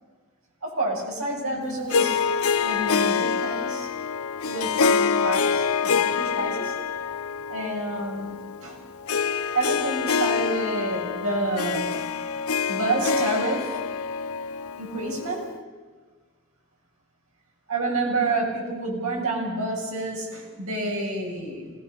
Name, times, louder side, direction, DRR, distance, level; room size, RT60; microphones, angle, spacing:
voice 1, 0.6-2.2 2.6-3.9 4.4-6.7 7.5-8.8 9.5-11.9 12.7-13.8 14.8-15.5 17.7-21.7, right 2 dB, 90° right, -2 dB, 8.0 m, -29 dB
Harp, 1.9-15.5, left 6 dB, 85° left, 0.8 m, -26 dB
27.0 x 19.0 x 6.9 m, 1.4 s
head